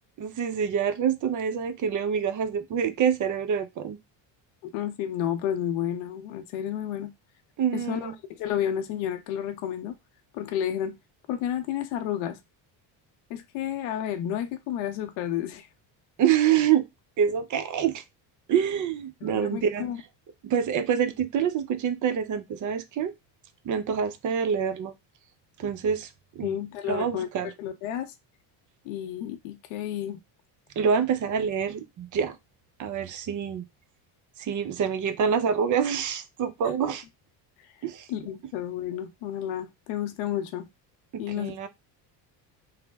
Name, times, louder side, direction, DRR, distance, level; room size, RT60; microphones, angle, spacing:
voice 1, 0.2-4.0 7.6-8.1 16.2-16.8 17.2-18.0 18.5-19.9 20.4-23.1 23.6-24.9 25.6-26.1 26.4-26.6 26.9-27.5 30.8-32.4 32.8-33.6 34.4-37.0 37.8-38.1 41.1-41.7, right 7 dB, 40° right, 0.6 m, -26 dB
voice 2, 4.6-7.1 7.7-10.0 10.3-10.9 11.3-12.4 13.3-15.7 19.2-20.0 26.4-28.1 28.9-30.2 38.1-40.7 41.2-41.7, left 10 dB, 75° left, 0.7 m, -31 dB
3.2 x 2.0 x 3.3 m
supercardioid pair, 95°, 49 cm